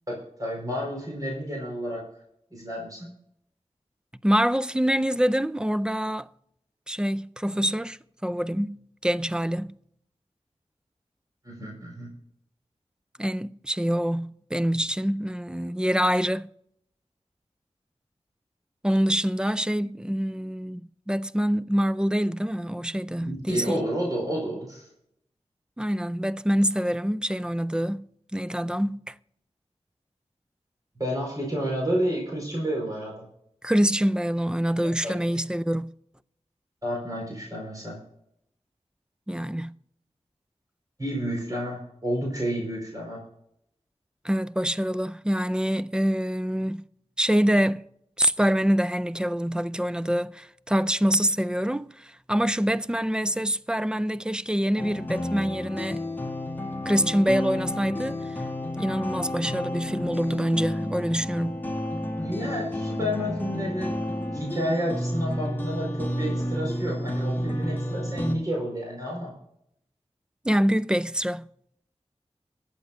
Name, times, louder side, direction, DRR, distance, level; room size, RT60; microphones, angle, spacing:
voice 1, 0.1-2.0 2.5-3.1 11.4-12.1 23.3-24.9 31.0-33.1 35.0-35.2 36.8-38.0 41.0-43.2 62.2-64.0 64.3-69.3, equal, 30° right, 4.6 m, -30 dB
voice 2, 4.2-6.3 6.9-9.7 13.2-16.5 18.8-20.8 21.1-23.8 25.8-28.0 28.3-29.1 33.6-35.9 39.3-39.8 44.2-46.8 47.2-47.9 48.2-56.0 56.9-58.4 58.8-61.6 70.4-71.5, equal, 5° right, 0.4 m, -25 dB
sound 1, 54.8-68.4, left 1 dB, 15° left, 2.1 m, -31 dB
22.0 x 8.4 x 2.6 m
wide cardioid pair, 75°, 12 cm